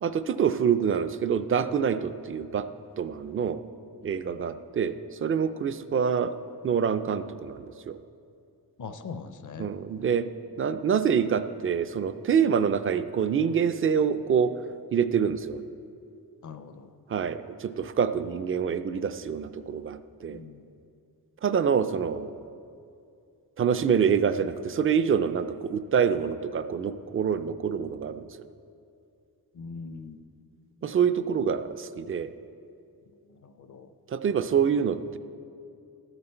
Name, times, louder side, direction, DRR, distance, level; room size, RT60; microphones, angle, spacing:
voice 1, 0.0-2.7 3.0-3.6 4.0-6.3 6.6-8.0 9.6-10.3 10.6-14.6 14.9-15.6 17.1-20.4 21.4-22.4 23.6-28.4 30.8-32.3 34.1-35.2, right 7 dB, 35° right, 12 dB, 0.4 m, -26 dB
voice 2, 4.3-4.6 8.8-9.7 16.4-16.9 20.3-20.6 29.5-30.2 33.3-33.9, left 5 dB, 50° left, 9 dB, 0.6 m, -42 dB
13.0 x 8.1 x 4.4 m, 2.5 s
wide cardioid pair, 120°, 38 cm